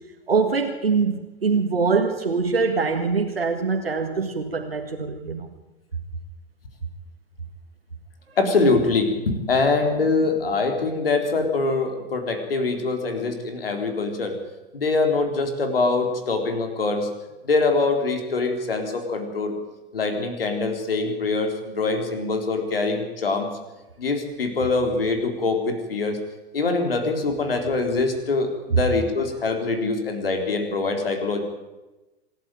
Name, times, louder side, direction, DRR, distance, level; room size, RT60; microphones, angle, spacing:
voice 1, 0.3-5.5, right 4 dB, 80° right, 3 dB, 1.9 m, -23 dB
voice 2, 8.4-14.4 14.7-17.1 17.4-19.5 19.9-23.5 24.0-26.2 26.5-31.4, left 3 dB, 70° left, 5 dB, 4.0 m, -24 dB
26.5 x 12.0 x 9.2 m, 1.1 s
figure-of-eight pair, 95°, 29 cm